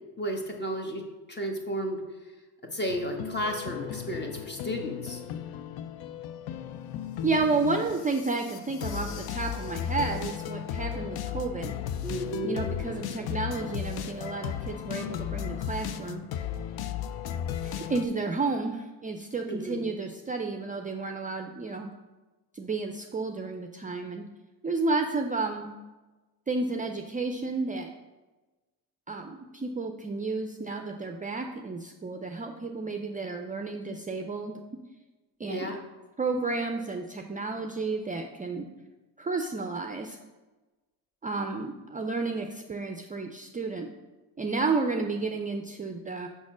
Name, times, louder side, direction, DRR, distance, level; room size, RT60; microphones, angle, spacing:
voice 1, 0.2-1.0 1.3-2.0 2.7-5.2 12.0-12.5 19.5-19.8 35.5-35.8, equal, 25° left, 3 dB, 1.3 m, -33 dB
sound 1, 2.9-18.1, left 9 dB, 70° left, 0.5 m, -35 dB
voice 2, 7.2-11.7 12.4-16.2 17.6-21.9 22.5-24.2 24.6-25.8 26.5-27.9 29.1-34.6 35.4-35.8 36.2-38.7 39.2-40.2 41.2-43.9 44.4-46.3, right 3 dB, 20° right, 4 dB, 0.5 m, -31 dB
5.6 x 4.2 x 6.1 m, 1.2 s
cardioid pair, 85°, 39 cm